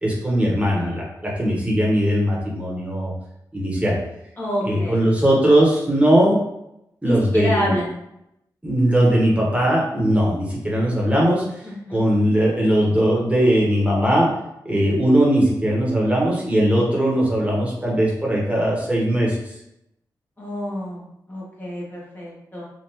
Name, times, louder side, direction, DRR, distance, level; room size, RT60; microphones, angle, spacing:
voice 1, 0.0-3.1 3.5-4.0 4.6-6.4 7.0-7.7 8.6-11.6 11.9-14.4 14.6-19.5, right 1 dB, 15° right, -4 dB, 1.2 m, -19 dB
voice 2, 4.4-5.0 7.0-7.9 11.6-12.0 20.4-22.7, equal, 25° left, -5 dB, 1.2 m, -27 dB
3.5 x 2.5 x 2.9 m, 0.82 s
cardioid pair, 45°, 8 cm